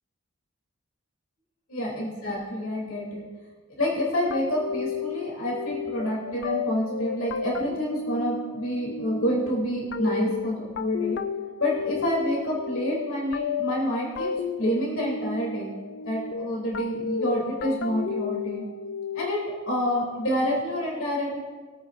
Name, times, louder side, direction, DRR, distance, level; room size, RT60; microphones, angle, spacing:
voice 1, 1.7-3.2 3.8-11.2 11.6-14.3 14.6-15.7 16.0-18.6 19.1-21.4, equal, 70° left, -4 dB, 2.9 m, -28 dB
sound 1, 4.3-19.7, left 5 dB, 50° left, 0.4 m, -32 dB
21.5 x 9.0 x 2.5 m, 1.5 s
head